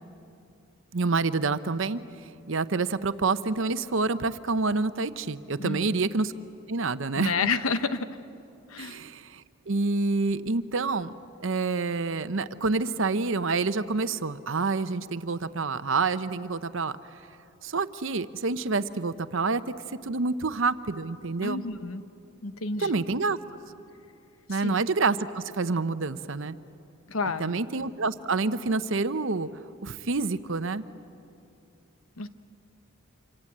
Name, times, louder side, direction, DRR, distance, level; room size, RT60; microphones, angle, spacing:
voice 1, 0.9-2.0 2.5-6.3 6.7-7.3 8.8-11.1 11.4-17.0 17.6-19.7 20.0-21.6 22.8-23.4 24.5-26.6 27.4-29.5 29.8-30.9, right 3 dB, 60° right, 13 dB, 0.8 m, -27 dB
voice 2, 5.6-6.0 7.1-8.2 8.7-9.0 21.4-22.0 22.4-23.0 24.5-24.7 27.1-27.6 32.2-32.3, left 4 dB, 75° left, 11 dB, 1.0 m, -30 dB
26.5 x 25.0 x 8.6 m, 2.7 s
head